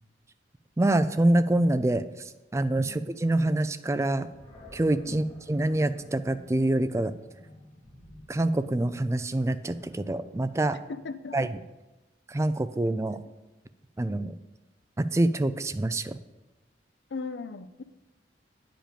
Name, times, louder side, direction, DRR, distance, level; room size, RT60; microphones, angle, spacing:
voice 1, 0.8-2.0 2.5-4.3 4.7-7.1 8.3-10.8 11.3-11.5 12.3-13.2 14.0-14.3 15.0-16.2, right 1 dB, 15° right, 11 dB, 0.3 m, -26 dB
Animal, 4.3-11.4, left 1 dB, 25° left, 1.6 m, -51 dB
voice 2, 10.9-11.5 17.1-17.8, left 4 dB, 75° left, 12 dB, 0.5 m, -38 dB
9.0 x 5.1 x 6.7 m, 1.0 s
head